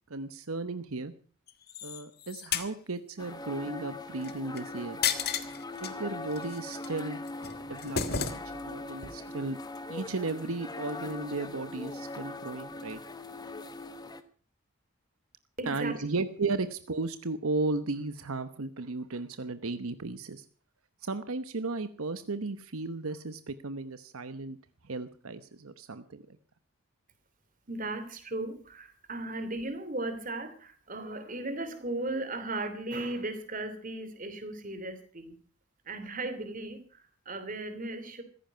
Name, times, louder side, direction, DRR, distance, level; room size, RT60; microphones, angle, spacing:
voice 1, 0.1-1.1 1.8-5.0 5.8-7.2 7.6-9.6 9.9-13.0 15.7-20.5 21.0-24.6 24.8-26.4, right 3 dB, 75° right, 12 dB, 1.0 m, -35 dB
sound 1, 1.5-2.7 4.2-4.6 5.0-5.9 6.3-6.9 7.3-8.7 9.0-9.2, left 7 dB, 45° left, 1.6 m, -33 dB
sound 2, 3.2-14.2, left 2 dB, 20° left, 1.3 m, -41 dB
voice 2, 15.6-15.9 27.7-35.4 35.8-38.2, right 2 dB, 35° right, 10 dB, 3.0 m, -36 dB
15.5 x 15.0 x 5.7 m, 0.42 s
head